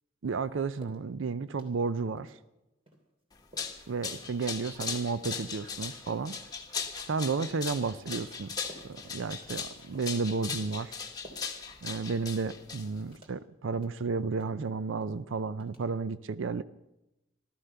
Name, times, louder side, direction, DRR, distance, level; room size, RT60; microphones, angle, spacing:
voice 1, 0.2-2.4 3.9-6.3 7.0-8.5 8.8-11.0 11.8-16.6, right 4 dB, 70° right, 0.5 m, -32 dB
sound 1, 0.8-1.0 1.5-1.9 2.2-2.4 2.9-3.0 3.5-3.8 4.2-4.3 4.8-5.0 5.5-5.7 6.1-6.3 6.8-7.1 7.4-7.6 8.1-8.4 8.7-8.9 9.3-9.7 9.9-10.2 10.6-10.7 11.2-11.6 11.9-12.0 12.5-12.7 13.1-13.4 13.7-13.9 14.3-14.7 15.0-15.2 15.6-15.8, right 1 dB, 30° right, 3.0 m, -52 dB
sound 2, 3.3-13.2, left 5 dB, 20° left, 1.4 m, -38 dB
15.0 x 13.5 x 6.8 m
head